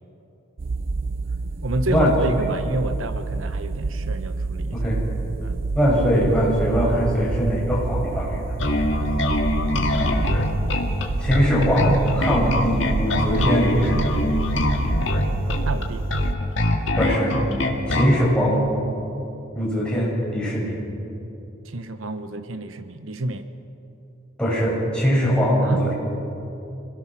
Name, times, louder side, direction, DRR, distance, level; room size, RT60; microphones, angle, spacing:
sound 1, 0.6-16.3, right 3 dB, 45° right, 0.4 m, -28 dB
voice 1, 1.6-4.8 5.4-5.6 15.7-16.1 21.7-23.5 25.6-25.8, right 2 dB, 90° right, 10 dB, 1.0 m, -29 dB
voice 2, 4.7-5.1 5.7-8.4 11.2-14.2 17.0-17.4 17.9-18.6 19.5-20.8 24.4-25.9, equal, 5° left, -6 dB, 6.3 m, -21 dB
Bass guitar, 8.6-18.2, left 1 dB, 65° left, 2.1 m, -23 dB
26.5 x 18.0 x 6.0 m, 2.9 s
head